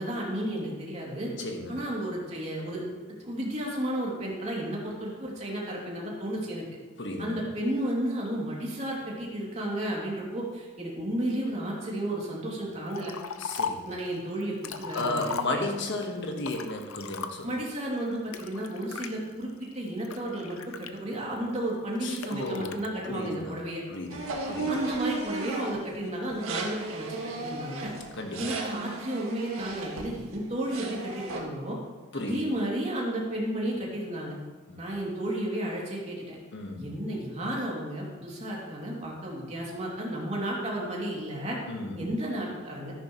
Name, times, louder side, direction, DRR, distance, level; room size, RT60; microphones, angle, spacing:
voice 1, 0.0-1.3 1.7-2.8 3.2-6.6 7.2-13.1 13.8-15.2 15.5-15.6 17.4-23.8 24.7-27.9 28.4-31.8 32.1-34.4 34.8-36.4 36.8-41.6 42.0-42.9, right 1 dB, 35° right, -3 dB, 2.7 m, -33 dB
voice 2, 1.4-1.8 7.0-7.4 13.4-13.8 14.9-17.5 22.0-22.8 23.1-23.6 23.9-24.7 28.1-28.6 32.1-32.4 34.7-34.8 36.5-36.8 41.7-42.1, left 2 dB, 60° left, 3 dB, 1.4 m, -34 dB
Liquid, 12.9-13.9 14.4-15.9 16.4-17.6 18.3-19.1 19.7-21.4 22.2-22.9, left 6 dB, 90° left, 0.7 m, -37 dB
sound 1, 24.1-25.9 26.3-30.4 30.7-31.4, right 3 dB, 85° right, 1.8 m, -35 dB
13.5 x 11.0 x 3.1 m, 1.3 s
head